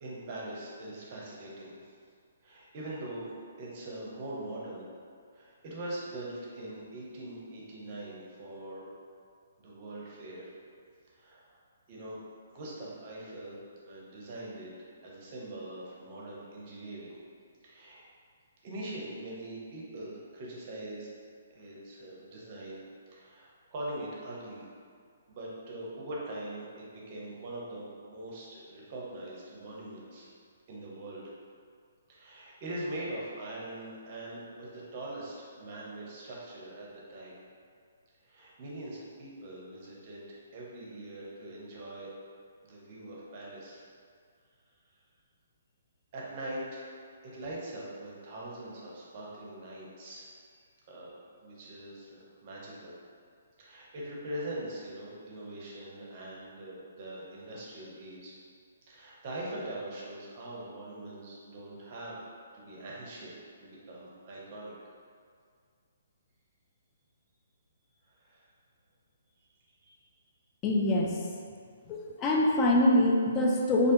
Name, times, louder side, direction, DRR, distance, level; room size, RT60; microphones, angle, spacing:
voice 1, 0.0-1.9 2.4-4.9 5.3-8.8 9.6-10.5 11.1-11.6 11.9-12.2 12.5-13.6 13.8-17.2 17.6-18.1 18.6-21.1 21.5-24.6 25.3-30.3 30.7-31.2 32.1-37.3 38.2-42.1 42.6-43.8 46.1-50.3 50.9-52.9 53.6-58.4 58.9-62.2 62.5-64.7 68.1-68.5 69.8-70.0, right 1 dB, 40° right, -5 dB, 0.6 m, -42 dB
voice 2, 70.6-71.2 71.9-73.9, left 1 dB, 25° left, -1 dB, 0.3 m, -24 dB
2.5 x 2.2 x 2.6 m, 2.1 s
figure-of-eight pair, 130°, 0 cm